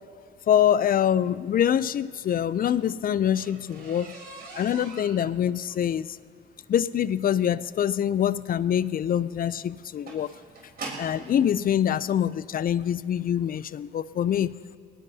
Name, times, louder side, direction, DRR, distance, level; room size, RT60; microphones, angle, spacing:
voice 1, 0.5-4.1 4.6-6.2 6.7-10.3 11.0-14.6, left 9 dB, 45° left, 17 dB, 0.4 m, -25 dB
sound 1, 2.4-11.3 12.2-12.3 12.8-13.1 13.3-13.4 13.8-13.9, right 3 dB, 50° right, 3.7 m, -44 dB
20.5 x 18.5 x 2.8 m, 2.4 s
cardioid pair, 90°, 20 cm